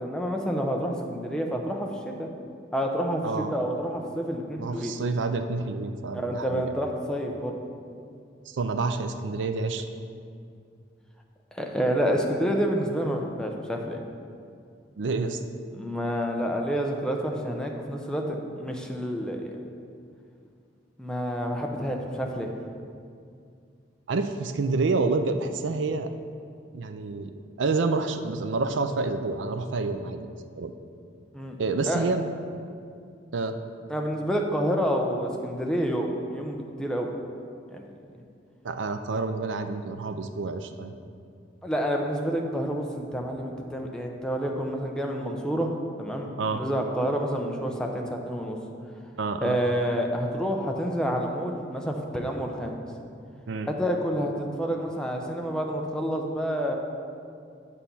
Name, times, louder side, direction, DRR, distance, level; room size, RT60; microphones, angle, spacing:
voice 1, 0.0-2.3 2.7-5.0 6.1-7.6 11.5-14.0 15.7-19.7 21.0-22.5 31.3-31.6 31.9-32.0 33.9-37.1 37.7-37.9 41.6-48.6 49.4-52.8 53.6-56.8, equal, 5° left, 1 dB, 0.7 m, -28 dB
voice 2, 3.2-3.5 4.6-6.7 8.5-9.8 15.0-15.4 24.1-26.1 26.7-30.3 30.6-30.7 31.6-32.2 33.3-33.6 38.6-41.0 46.4-46.6 49.2-49.6 53.5-53.7, right 3 dB, 85° right, 7 dB, 0.5 m, -28 dB
8.2 x 4.3 x 6.9 m, 2.3 s
head